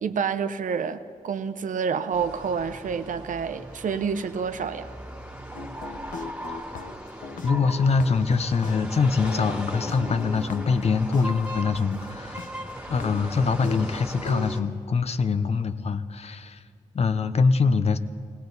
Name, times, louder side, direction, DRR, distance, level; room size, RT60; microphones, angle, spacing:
voice 1, 0.0-5.0, right 6 dB, 75° right, 10 dB, 0.7 m, -28 dB
sound 1, 2.1-14.6, right 1 dB, 10° right, 2.0 m, -38 dB
sound 2, 5.5-8.3 8.6-11.2 11.7-11.8 12.4-12.5 12.9-14.5, left 4 dB, 75° left, 0.9 m, -38 dB
voice 2, 7.4-12.5 12.9-16.6 16.9-18.0, left 4 dB, 50° left, 11 dB, 0.7 m, -24 dB
19.0 x 18.5 x 4.0 m, 2.3 s
wide cardioid pair, 115°, 14 cm